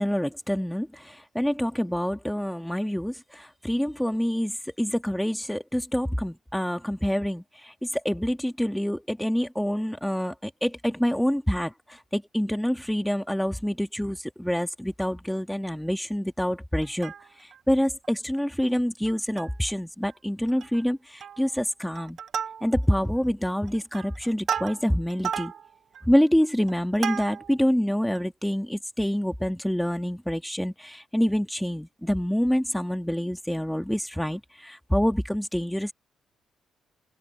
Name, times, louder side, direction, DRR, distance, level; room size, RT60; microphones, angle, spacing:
voice 1, 0.0-22.2 22.6-25.5 26.0-35.9, equal, 5° left, 1.7 m, -27 dB
Plucked string instrument, 16.8-17.6 18.0-18.1 18.4-18.6 19.1-19.7 20.0-20.1 20.5-20.9 21.2-21.6 22.0-23.0 23.5-27.6 28.2-28.3, right 8 dB, 55° right, 1.0 m, -34 dB
open air
cardioid pair, 90°, 0 cm